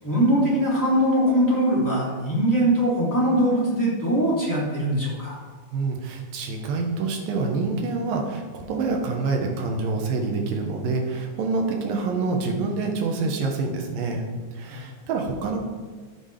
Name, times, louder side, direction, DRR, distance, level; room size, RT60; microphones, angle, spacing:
voice 1, 0.0-5.4 14.7-14.8, equal, 5° left, -7 dB, 2.7 m, -21 dB
voice 2, 5.7-14.2 14.5-15.6, right 3 dB, 85° right, 2 dB, 3.0 m, -26 dB
13.0 x 8.2 x 3.5 m, 1.4 s
omnidirectional pair, 3.9 m